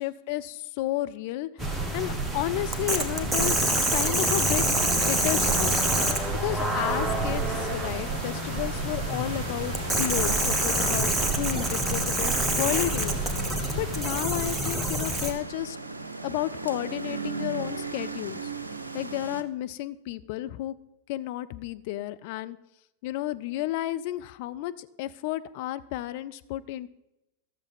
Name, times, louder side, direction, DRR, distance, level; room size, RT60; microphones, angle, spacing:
voice 1, 0.0-1.5 1.9-4.6 4.9-5.4 6.4-11.1 11.4-13.2 13.5-15.6 16.2-18.5 18.9-20.7 21.1-22.6 23.0-26.9, left 15 dB, 50° left, 11 dB, 0.5 m, -32 dB
sound 1, 1.6-15.3, right 1 dB, 10° right, 1.3 m, -26 dB
sound 2, 4.1-19.4, right 3 dB, 80° right, 0.6 m, -39 dB
13.0 x 6.9 x 5.3 m, 0.91 s
figure-of-eight pair, 90°, 0 cm